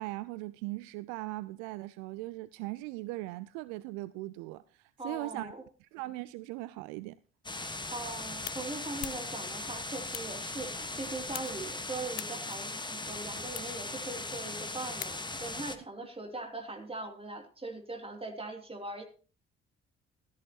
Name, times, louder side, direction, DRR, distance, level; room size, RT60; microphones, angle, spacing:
voice 1, 0.0-5.5 5.9-7.2, right 19 dB, 65° right, 0.5 m, -39 dB
voice 2, 5.0-5.6 7.9-19.0, right 2 dB, 15° right, 3.0 m, -41 dB
sound 1, 7.4-15.8, left 2 dB, 15° left, 1.4 m, -39 dB
sound 2, 7.8-15.6, left 14 dB, 80° left, 0.5 m, -48 dB
15.5 x 13.5 x 2.9 m
figure-of-eight pair, 45°, 32 cm